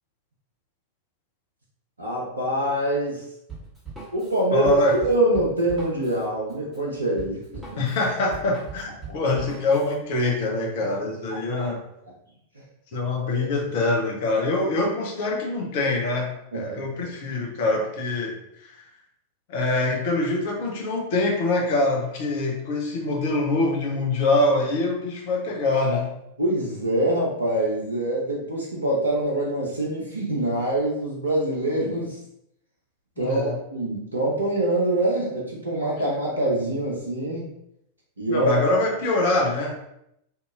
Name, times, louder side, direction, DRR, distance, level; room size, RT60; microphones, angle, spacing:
voice 1, 2.0-3.2 4.1-7.8 13.2-13.5 16.5-17.0 26.4-32.2 33.2-37.5 38.2-38.5, right 1 dB, 80° right, -3 dB, 0.6 m, -25 dB
Drum kit, 3.5-10.0, right 4 dB, 5° right, 1.4 m, -41 dB
voice 2, 4.5-5.0 7.8-8.9 9.1-11.8 12.9-18.9 19.5-26.1 33.2-33.6 38.3-39.7, left 2 dB, 50° left, 0 dB, 0.7 m, -24 dB
2.7 x 2.7 x 2.4 m, 0.77 s
figure-of-eight pair, 90°, 0 cm